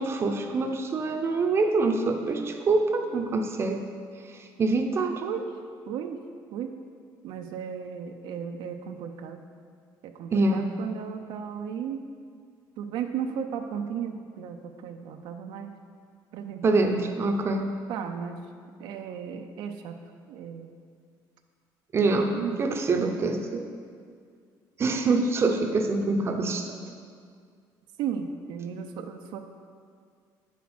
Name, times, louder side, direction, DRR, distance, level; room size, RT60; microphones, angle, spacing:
voice 1, 0.0-3.8 4.3-5.2 10.3-10.6 16.6-17.7 21.9-23.7 24.8-26.7, right 3 dB, 30° right, 4 dB, 0.7 m, -25 dB
voice 2, 5.9-6.2 6.5-6.7 7.2-9.4 10.0-12.0 12.8-15.7 16.3-16.7 17.9-18.4 18.8-20.0 20.3-20.7 22.3-22.7 28.0-29.4, right 7 dB, 75° right, 5 dB, 0.6 m, -35 dB
8.4 x 5.7 x 6.0 m, 2.1 s
cardioid pair, 145°, 8 cm